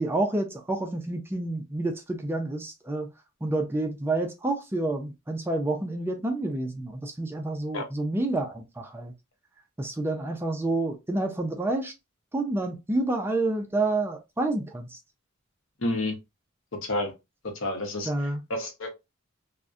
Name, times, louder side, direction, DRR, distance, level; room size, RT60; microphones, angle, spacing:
voice 1, 0.0-3.1 3.4-9.1 9.8-11.9 12.3-15.0 18.1-18.4, right 2 dB, 10° right, 0.3 m, -29 dB
voice 2, 15.8-16.2 16.8-17.1 17.4-18.1 18.5-18.9, left 1 dB, 70° left, 0.8 m, -29 dB
2.5 x 2.1 x 2.3 m
head